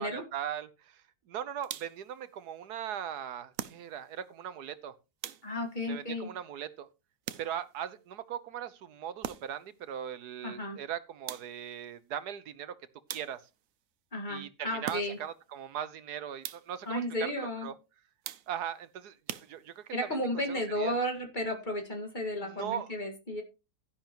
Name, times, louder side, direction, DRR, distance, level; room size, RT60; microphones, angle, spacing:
voice 1, 0.0-4.9 5.9-6.9 7.4-12.7 13.1-13.4 14.3-17.7 18.5-20.2 20.5-20.9 22.4-22.9, right 9 dB, 80° right, 1.4 m, -39 dB
sound 1, 1.6-2.1 3.5-4.2 5.2-5.8 7.2-7.8 9.2-9.7 11.3-11.8 13.1-13.7 14.8-15.4 16.4-16.9 18.2-18.8 19.3-20.0, right 10 dB, 65° right, 1.0 m, -42 dB
voice 2, 5.4-6.3 10.4-10.8 14.1-15.2 16.9-17.7 19.9-23.4, left 1 dB, 30° left, 1.9 m, -33 dB
11.5 x 10.5 x 3.0 m
omnidirectional pair, 1.7 m